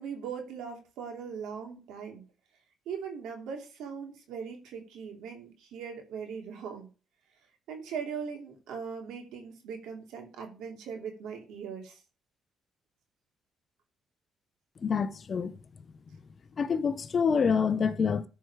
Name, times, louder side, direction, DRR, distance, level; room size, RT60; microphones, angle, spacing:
voice 1, 0.0-2.2 2.9-6.9 7.7-12.0, right 6 dB, 85° right, 3.0 m, -40 dB
voice 2, 14.8-15.6 16.6-18.3, left 6 dB, 45° left, 0.9 m, -27 dB
13.5 x 4.7 x 4.9 m
cardioid pair, 90°, 0 cm